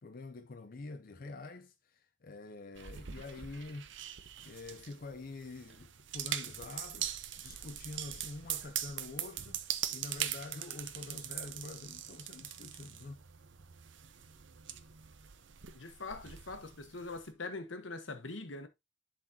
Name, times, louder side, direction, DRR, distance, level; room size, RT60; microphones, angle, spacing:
voice 1, 0.0-3.9 4.4-13.3, left 3 dB, 50° left, 0.6 m, -46 dB
sound 1, 2.8-17.3, right 10 dB, 70° right, 0.7 m, -42 dB
voice 2, 15.7-18.7, left 3 dB, 85° left, 1.2 m, -43 dB
11.0 x 4.1 x 2.8 m
head